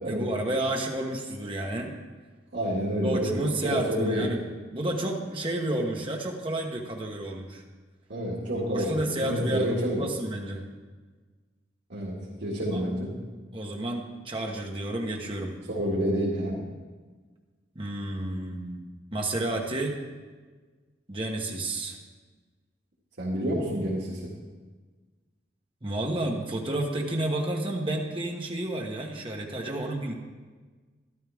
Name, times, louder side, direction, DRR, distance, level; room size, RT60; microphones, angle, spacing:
voice 1, 0.0-1.9 3.0-4.4 4.7-7.6 8.5-10.6 12.7-12.8 13.5-15.5 17.7-18.8 19.1-20.0 21.1-22.0 25.8-30.1, right 1 dB, 30° right, 1 dB, 1.2 m, -31 dB
voice 2, 2.5-3.3 3.6-4.3 8.1-10.0 11.9-13.2 15.7-16.6 23.2-24.2, equal, 75° right, -7 dB, 2.1 m, -29 dB
13.0 x 12.0 x 3.5 m, 1.4 s
head